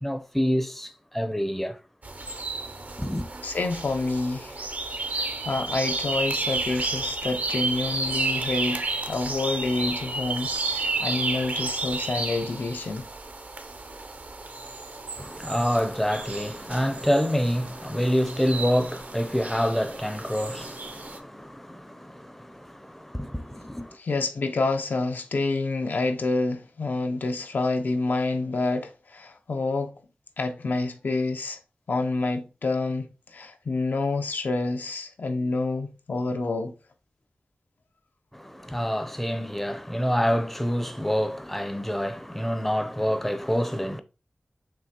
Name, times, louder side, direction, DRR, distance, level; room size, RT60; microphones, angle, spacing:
voice 1, 0.0-1.8 3.0-3.3 15.2-24.0 38.3-44.0, equal, 5° left, 0.5 m, -27 dB
sound 1, 2.0-21.2, right 3 dB, 55° right, 0.6 m, -32 dB
voice 2, 3.4-4.7 5.1-13.1 24.0-29.9 30.4-31.6 31.9-36.7, left 3 dB, 75° left, 0.5 m, -28 dB
5.2 x 3.2 x 2.8 m
wide cardioid pair, 95°, 3 cm